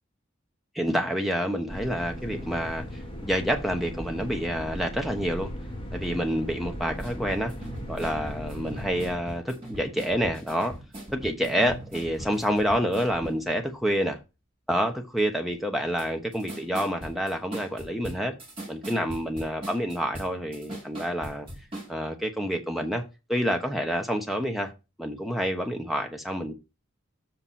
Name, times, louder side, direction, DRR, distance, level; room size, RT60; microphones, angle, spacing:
voice 1, 0.7-5.5 5.9-7.5 7.9-10.7 11.1-14.2 14.7-18.3 18.7-21.5 21.9-23.0 23.3-24.7 25.0-26.5, equal, ahead, 1.0 m, -28 dB
sound 1, 1.7-9.1, equal, 25° left, 1.7 m, -37 dB
sound 2, 6.9-13.5 16.0-16.1 16.3-21.9, right 1 dB, 25° right, 4.4 m, -40 dB
7.5 x 5.8 x 4.2 m
head